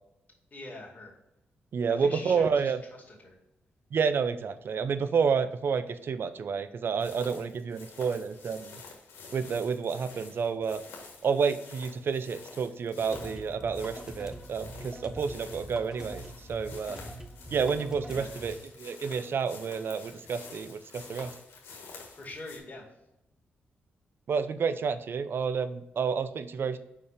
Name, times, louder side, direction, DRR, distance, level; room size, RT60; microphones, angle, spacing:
voice 1, 0.5-1.1 1.9-2.7 3.1-3.4 18.1-18.3 22.1-22.8, left 2 dB, 40° left, -1 dB, 2.4 m, -43 dB
voice 2, 1.7-2.8 3.9-8.8 9.3-10.8 11.2-16.2 16.5-17.0 17.5-21.3 24.3-26.8, right 6 dB, 60° right, 12 dB, 0.5 m, -29 dB
sound 1, 7.0-22.6, left 4 dB, 85° left, 1.3 m, -49 dB
sound 2, 13.1-18.6, right 1 dB, 15° right, 1.0 m, -44 dB
5.2 x 4.4 x 4.8 m, 0.88 s
supercardioid pair, 55°, 4 cm